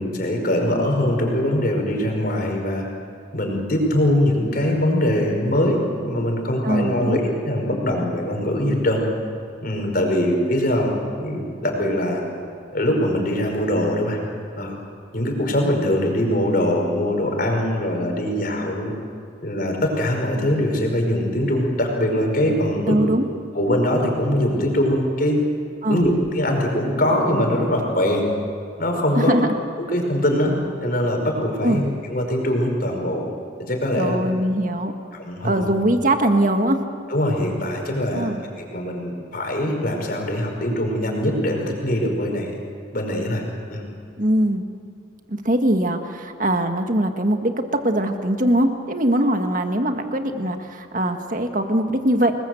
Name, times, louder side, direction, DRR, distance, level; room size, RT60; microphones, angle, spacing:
voice 1, 0.0-2.8 3.3-9.0 9.6-12.2 12.7-14.2 14.6-14.7 15.1-18.9 19.4-22.9 23.5-25.4 25.9-28.3 28.8-29.3 29.8-30.5 30.8-31.8 32.1-33.2 33.6-34.2 35.1-35.6 37.1-42.5 42.9-43.4 43.7-43.8, left 1 dB, 45° left, 2 dB, 5.2 m, -22 dB
voice 2, 6.6-7.2 22.9-23.2 25.8-26.0 29.2-29.5 31.6-31.8 34.0-34.9 35.4-36.8 38.1-38.4 44.2-44.6 45.3-52.3, right 1 dB, 40° right, 6 dB, 1.8 m, -21 dB
29.5 x 21.0 x 7.9 m, 2.4 s
head